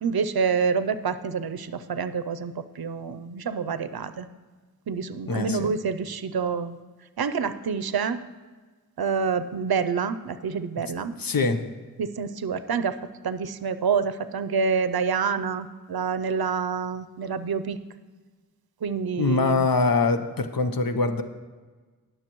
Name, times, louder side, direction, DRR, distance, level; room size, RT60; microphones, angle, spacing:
voice 1, 0.0-4.3 4.9-6.8 7.2-8.2 9.0-11.1 12.0-13.0 13.2-17.8 18.8-19.7, right 5 dB, 85° right, 12 dB, 0.5 m, -27 dB
voice 2, 5.3-5.7 11.2-11.6 19.2-21.2, left 3 dB, 70° left, 8 dB, 0.8 m, -23 dB
19.5 x 6.7 x 3.0 m, 1.4 s
wide cardioid pair, 45°, 36 cm